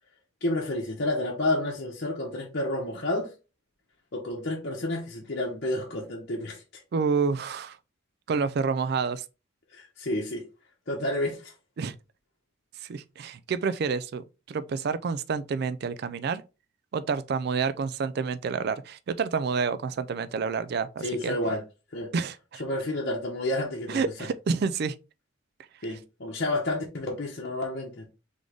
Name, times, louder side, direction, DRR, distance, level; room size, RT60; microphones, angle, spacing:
voice 1, 0.4-3.3 4.1-6.6 9.7-10.4 10.9-11.5 21.0-21.6 21.9-22.1 22.6-24.3 25.8-28.0, left 1 dB, 50° left, 0.9 m, -30 dB
voice 2, 6.9-7.8 8.3-9.2 11.8-11.9 12.8-16.4 16.9-21.3 22.1-22.6 23.9-24.9, right 5 dB, 50° right, 0.3 m, -29 dB
3.8 x 3.6 x 3.3 m
head